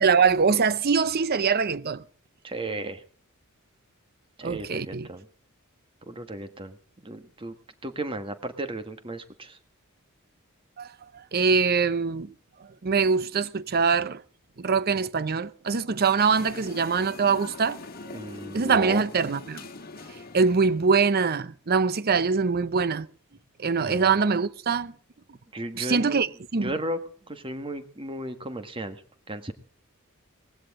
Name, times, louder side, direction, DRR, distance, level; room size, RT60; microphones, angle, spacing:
voice 1, 0.0-2.0 4.4-5.1 10.8-12.3 12.8-14.2 14.6-17.8 18.0-18.2 18.5-19.6 20.3-23.1 23.6-24.9 25.8-26.3 26.5-26.7, right 5 dB, 45° right, 0.6 m, -23 dB
voice 2, 2.4-3.0 4.4-5.3 6.1-6.8 7.0-7.6 7.8-9.6 18.1-19.0 23.8-24.1 25.5-26.2 26.6-27.0 27.3-29.0 29.3-29.5, right 1 dB, 25° right, 1.5 m, -34 dB
sound 1, 16.2-21.0, left 3 dB, 40° left, 1.8 m, -42 dB
19.5 x 15.5 x 3.7 m
head